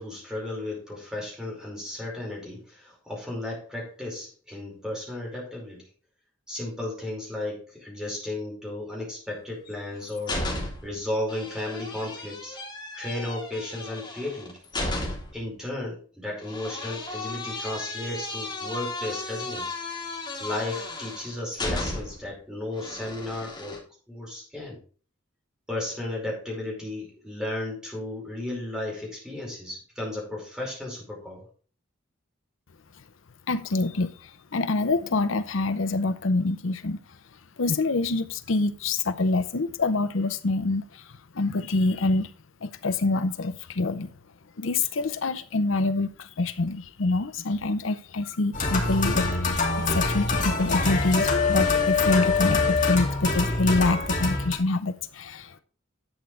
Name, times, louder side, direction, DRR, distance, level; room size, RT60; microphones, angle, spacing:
voice 1, 0.0-5.9 6.5-10.5 10.8-12.6 12.9-14.6 15.3-19.8 20.4-24.8 25.7-31.5, left 1 dB, 5° right, 5.2 m, -34 dB
sound 1, 9.7-11.0 11.3-15.4 16.4-22.3 22.8-23.8, left 2 dB, 20° left, 3.3 m, -34 dB
voice 2, 33.5-42.3 42.6-44.1 44.6-55.6, left 3 dB, 70° left, 0.7 m, -26 dB
sound 2, 48.5-54.6, left 3 dB, 40° left, 2.4 m, -24 dB
11.5 x 8.4 x 3.3 m
head